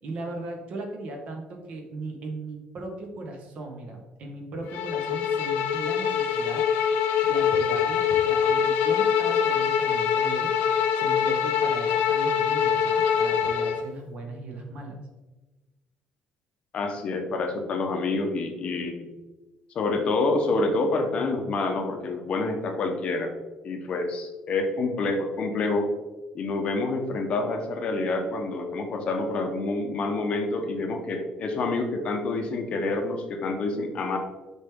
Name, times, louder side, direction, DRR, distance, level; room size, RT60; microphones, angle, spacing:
voice 1, 0.0-6.7 7.2-10.5 10.9-15.0, right 2 dB, 45° right, 3 dB, 1.1 m, -37 dB
Bowed string instrument, 4.7-13.8, left 8 dB, 85° left, 0.6 m, -24 dB
voice 2, 16.7-19.1 19.7-23.3 23.6-25.9 26.3-34.2, left 3 dB, 40° left, 4 dB, 0.8 m, -27 dB
6.7 x 4.5 x 3.6 m, 1.2 s
cardioid pair, 170°, 3 cm